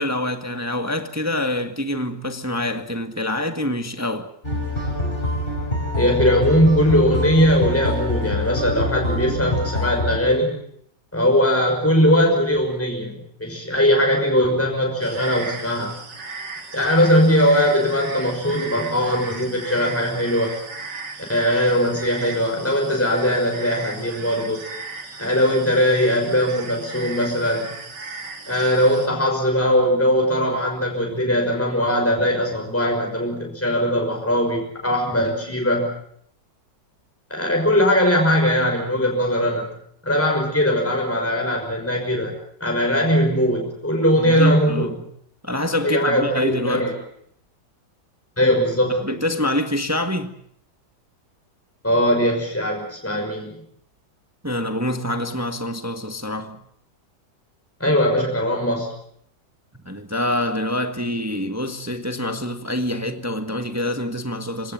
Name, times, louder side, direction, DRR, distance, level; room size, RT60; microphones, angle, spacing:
voice 1, 0.0-4.3 44.2-45.0 45.4-46.9 49.0-50.3 54.4-56.6 59.8-64.7, left 1 dB, 10° right, 1.5 m, -26 dB
sound 1, 4.4-10.2, left 1 dB, 30° left, 7.0 m, -25 dB
voice 2, 6.0-10.6 11.1-15.9 16.7-20.5 21.3-24.6 25.2-27.7 28.5-35.9 37.3-39.7 40.0-42.3 42.6-44.9 45.8-46.9 48.4-49.2 51.8-53.5 57.8-58.9, equal, 5° left, 6.0 m, -20 dB
sound 2, 15.0-29.1, right 4 dB, 70° right, 3.1 m, -36 dB
27.5 x 17.5 x 9.2 m
omnidirectional pair, 1.9 m